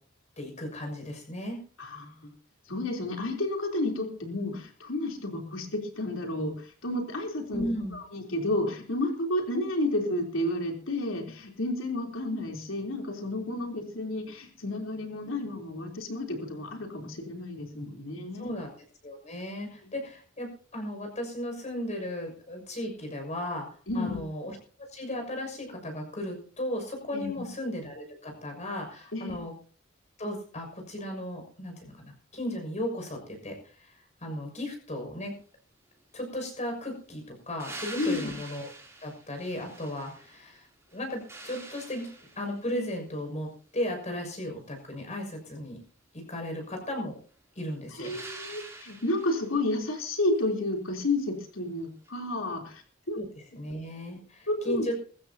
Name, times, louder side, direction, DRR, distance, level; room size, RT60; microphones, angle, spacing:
voice 1, 0.4-1.6 7.5-8.0 18.4-18.8 19.0-24.6 24.9-29.5 30.2-35.3 36.1-38.7 39.0-43.5 43.7-45.8 46.3-47.2 47.5-48.1 53.1-54.9, left 1 dB, 35° left, 3 dB, 6.4 m, -36 dB
voice 2, 1.8-2.3 2.7-18.5 23.9-24.2 27.1-27.5 29.1-29.4 38.0-38.3 48.0-52.8 53.1-53.2 54.5-54.9, left 1 dB, 80° left, 2 dB, 3.6 m, -31 dB
sound 1, 37.6-40.5 40.9-42.7 48.0-49.5 52.1-52.2, right 2 dB, 15° right, 3.2 m, -45 dB
21.5 x 15.0 x 2.8 m, 0.41 s
head